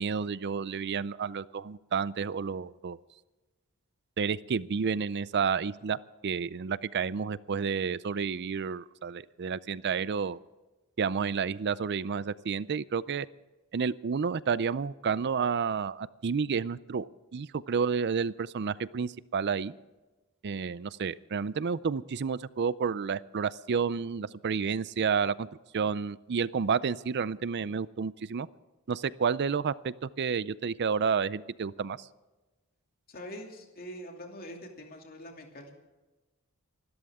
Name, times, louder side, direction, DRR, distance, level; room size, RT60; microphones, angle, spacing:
voice 1, 0.0-3.0 4.2-6.0 6.2-10.4 11.0-13.3 13.7-19.7 20.4-25.5 25.7-28.5 28.9-32.1, right 6 dB, 50° right, 18 dB, 0.5 m, -30 dB
voice 2, 33.1-35.8, equal, 45° left, 2 dB, 2.6 m, -44 dB
26.0 x 13.0 x 3.6 m, 1.1 s
head